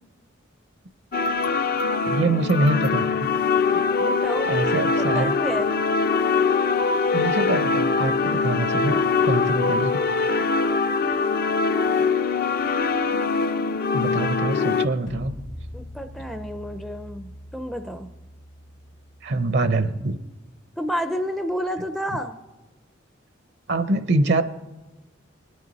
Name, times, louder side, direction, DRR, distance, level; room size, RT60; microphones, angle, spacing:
sound 1, 1.1-14.9, left 4 dB, 50° left, 0.5 m, -22 dB
voice 1, 2.0-3.3 3.7-3.8 4.5-5.4 7.1-10.0 13.9-15.3 19.2-20.2 23.7-24.4, right 2 dB, 60° right, 11 dB, 0.7 m, -24 dB
voice 2, 4.0-4.6 5.0-5.7 15.7-18.1 20.8-22.4, equal, ahead, 7 dB, 0.5 m, -30 dB
sound 2, 15.1-20.1, equal, 65° left, 1.8 m, -41 dB
20.0 x 9.6 x 4.0 m, 1.1 s
head